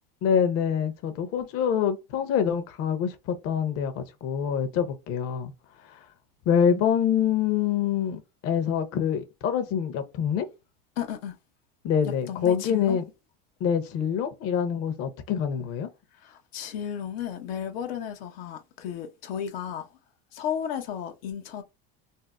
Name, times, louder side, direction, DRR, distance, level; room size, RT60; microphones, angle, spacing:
voice 1, 0.2-5.5 5.8-6.0 6.5-10.5 11.8-13.0 13.6-15.9, left 8 dB, 50° left, 0.7 m, -26 dB
voice 2, 11.0-11.3 12.0-13.0 16.1-19.9 20.3-21.6, left 9 dB, 85° left, 0.7 m, -34 dB
2.6 x 2.0 x 3.4 m
supercardioid pair, 120°, 29 cm